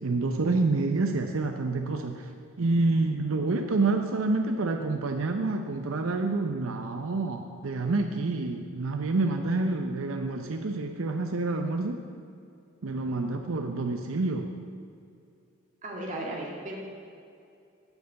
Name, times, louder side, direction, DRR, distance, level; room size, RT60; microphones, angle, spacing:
voice 1, 0.0-2.3 2.6-12.0 12.8-14.5, right 3 dB, 85° right, 5 dB, 0.6 m, -28 dB
voice 2, 15.8-16.8, right 1 dB, 35° right, -2 dB, 1.9 m, -35 dB
8.1 x 6.8 x 7.9 m, 2.5 s
head